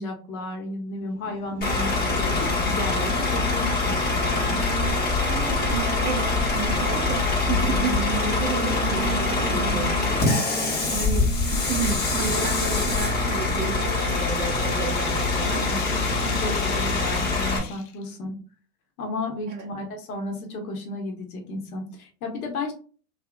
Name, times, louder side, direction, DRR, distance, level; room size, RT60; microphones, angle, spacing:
voice 1, 0.0-4.6 15.4-18.3 19.0-22.7, left 2 dB, 75° left, 2 dB, 1.0 m, -33 dB
Race car auto racing, 1.0-17.2, right 4 dB, 85° right, 0.7 m, -39 dB
Bus / Idling, 1.6-17.6, left 3 dB, 20° left, 0.9 m, -24 dB
voice 2, 5.7-10.3 10.9-15.6 19.4-19.7, right 5 dB, 20° right, 0 dB, 0.4 m, -32 dB
sound 1, 10.8-18.0, left 9 dB, 55° left, 0.6 m, -39 dB
2.8 x 2.4 x 2.2 m, 0.40 s
hypercardioid pair, 100°, 44 cm